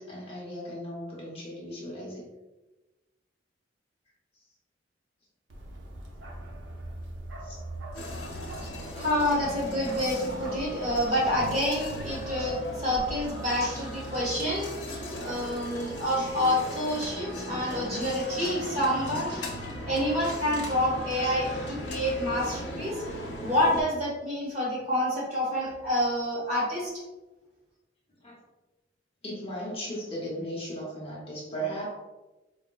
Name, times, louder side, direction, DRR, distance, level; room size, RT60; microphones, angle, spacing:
voice 1, 0.0-2.2 7.4-7.6 8.1-8.2 17.1-17.2 28.2-28.4 29.2-31.9, right 1 dB, 30° left, -5 dB, 0.7 m, -36 dB
Bark, 5.5-12.5, right 1 dB, 80° right, 0.5 m, -42 dB
sound 1, 7.9-23.8, left 1 dB, 65° left, 0.6 m, -37 dB
voice 2, 8.6-19.4 19.8-23.0 23.4-27.0, left 1 dB, 35° right, -7 dB, 1.4 m, -28 dB
4.5 x 2.1 x 2.3 m, 1.1 s
head